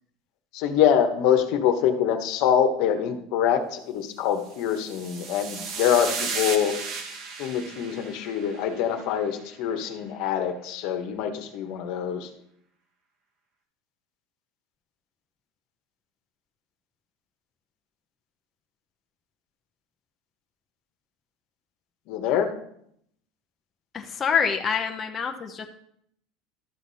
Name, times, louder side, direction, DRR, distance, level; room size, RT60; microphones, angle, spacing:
voice 1, 0.5-6.7 7.4-12.3 22.1-22.5, left 9 dB, 65° left, 6 dB, 1.2 m, -24 dB
sound 1, 4.5-9.0, right 5 dB, 55° right, 1.7 m, -35 dB
voice 2, 23.9-25.7, left 6 dB, 30° left, 3 dB, 0.8 m, -26 dB
12.5 x 6.0 x 4.2 m, 0.71 s
supercardioid pair, 115°, 0 cm